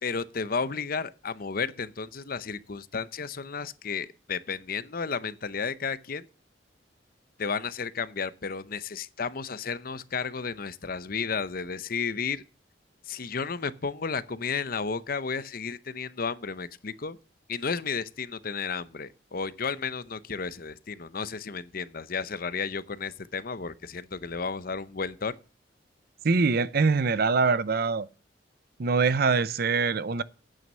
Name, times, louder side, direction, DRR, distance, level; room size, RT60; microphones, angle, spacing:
voice 1, 0.0-6.3 7.4-12.4 13.1-17.2 17.5-25.4, left 5 dB, 50° left, 0.7 m, -33 dB
voice 2, 26.2-28.1 28.8-30.2, right 4 dB, 55° right, 0.6 m, -24 dB
9.4 x 9.1 x 5.5 m
head